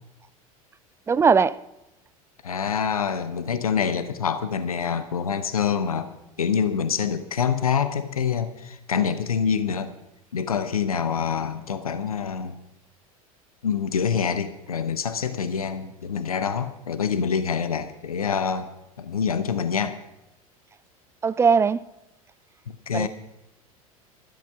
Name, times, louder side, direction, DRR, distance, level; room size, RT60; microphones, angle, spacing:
voice 1, 1.1-1.5 21.2-21.8 22.9-23.1, right 5 dB, 15° right, 0.4 m, -19 dB
voice 2, 2.4-6.1 6.4-9.9 10.3-12.6 13.6-18.7 19.0-20.0 22.7-23.1, left 7 dB, 75° left, 0.9 m, -26 dB
13.5 x 11.5 x 5.7 m
figure-of-eight pair, 75°, 19 cm